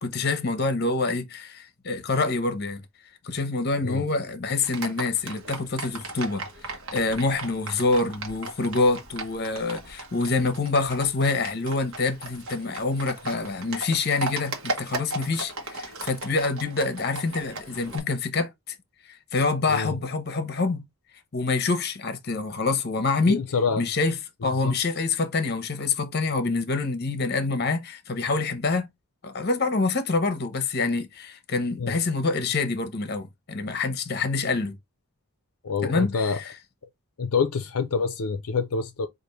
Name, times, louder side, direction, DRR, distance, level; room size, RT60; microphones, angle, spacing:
voice 1, 0.0-2.8 3.2-18.8 19.1-20.8 21.3-23.4 23.8-24.1 24.4-28.9 29.2-34.8 35.8-36.5, left 3 dB, 45° left, 0.8 m, -26 dB
Livestock farm animals working animals, 4.6-18.0, right 2 dB, 60° right, 1.1 m, -37 dB
voice 2, 23.3-23.8 24.4-24.8 31.7-32.0 35.6-36.4 37.2-39.1, left 5 dB, 75° left, 0.5 m, -27 dB
5.1 x 2.6 x 3.1 m
head